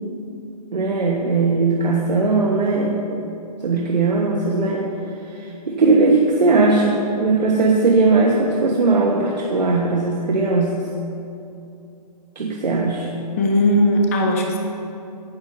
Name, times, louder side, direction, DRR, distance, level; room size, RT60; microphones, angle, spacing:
voice 1, 0.7-3.2 3.6-4.9 5.4-10.8 12.3-13.1, right 3 dB, 85° right, -1 dB, 1.4 m, -19 dB
voice 2, 13.4-14.6, left 1 dB, 20° left, 1 dB, 0.9 m, -18 dB
16.5 x 11.0 x 2.7 m, 2.7 s
hypercardioid pair, 170°, 21 cm